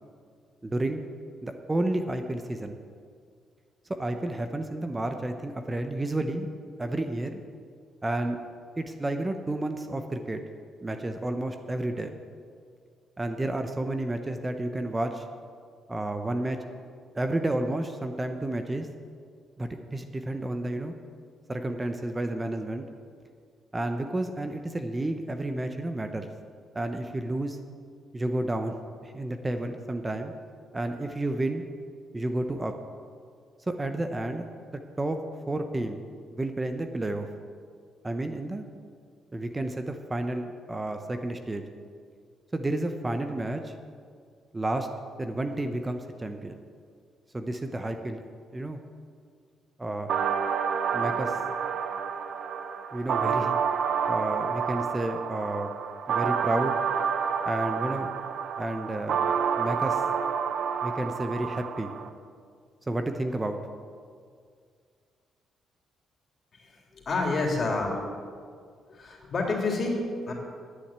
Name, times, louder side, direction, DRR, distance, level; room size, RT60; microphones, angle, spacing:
voice 1, 0.6-1.0 1.4-2.8 4.0-6.5 6.8-7.4 8.0-8.4 8.8-10.4 10.8-12.1 13.2-15.2 15.9-16.6 17.1-18.9 19.6-20.9 21.5-22.8 23.7-26.3 26.7-27.6 28.1-28.7 29.0-30.3 30.7-31.6 32.1-32.7 33.7-34.4 35.0-35.2 35.5-36.0 36.3-37.3 38.0-38.6 39.3-41.6 42.5-43.7 44.5-44.9 45.2-46.6 47.3-48.8 49.8-50.1 50.9-51.4 52.9-53.6 54.1-55.7 56.1-56.8 57.4-58.1 58.6-59.2 59.6-60.0 60.8-61.9 62.9-63.6, right 1 dB, 20° right, 6 dB, 0.9 m, -31 dB
sound 1, 50.1-62.1, right 7 dB, 70° right, 0.8 m, -29 dB
voice 2, 66.5-67.9 68.9-70.3, left 3 dB, 45° left, 0 dB, 3.2 m, -29 dB
10.0 x 8.6 x 8.8 m, 2.1 s
cardioid pair, 90°, 0 cm